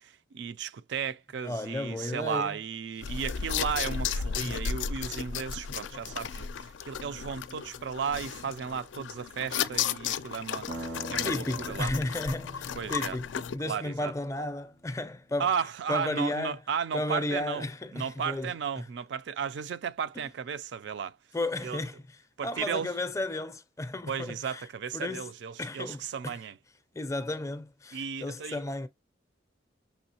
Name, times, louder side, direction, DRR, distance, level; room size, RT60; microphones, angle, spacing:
voice 1, 0.0-11.9 12.7-13.2 13.6-14.1 15.4-17.6 17.9-21.2 21.6-21.8 22.4-22.9 24.1-26.6 27.9-28.6, right 7 dB, 65° right, 0.4 m, -34 dB
voice 2, 1.4-2.6 4.4-4.6 11.2-15.5 15.9-16.6 16.9-18.9 20.2-20.3 21.3-22.2 22.4-24.7 24.9-25.3 25.6-26.4 26.9-28.9, left 2 dB, 15° left, 0.4 m, -34 dB
sound 1, 3.0-13.6, left 7 dB, 80° left, 0.4 m, -34 dB
sound 2, 10.7-14.5, right 1 dB, 90° right, 1.8 m, -43 dB
6.1 x 3.1 x 2.7 m
head